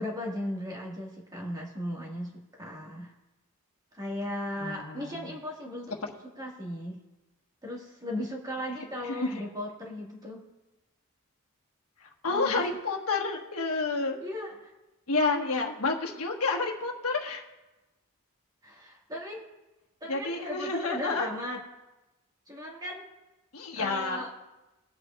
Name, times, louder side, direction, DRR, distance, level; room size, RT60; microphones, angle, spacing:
voice 1, 0.0-3.1 3.9-6.1 6.4-7.0 7.6-10.4 12.3-12.6 14.2-14.7 18.6-19.4 20.0-21.6 22.5-23.1 23.7-24.3, left 1 dB, 20° right, -2 dB, 1.8 m, -37 dB
voice 2, 4.6-5.2 9.0-9.4 12.0-14.2 15.1-17.4 20.1-21.3 23.5-24.2, left 3 dB, 80° left, 1 dB, 1.4 m, -30 dB
21.0 x 8.1 x 2.4 m, 1.0 s
head